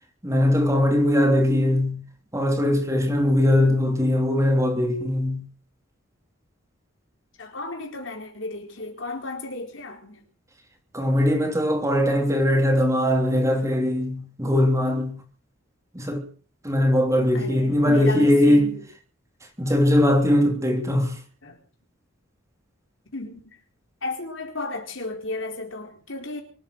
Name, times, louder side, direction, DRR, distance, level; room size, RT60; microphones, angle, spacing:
voice 1, 0.2-2.0 2.3-5.4 10.9-15.1 15.9-16.3 16.6-18.7 19.6-21.2, left 1 dB, 15° right, 3.2 m, -20 dB
voice 2, 7.4-10.2 17.3-18.8 21.4-21.6 23.1-23.6 24.0-26.4, left 2 dB, 65° left, 4.3 m, -34 dB
24.5 x 8.6 x 6.5 m
head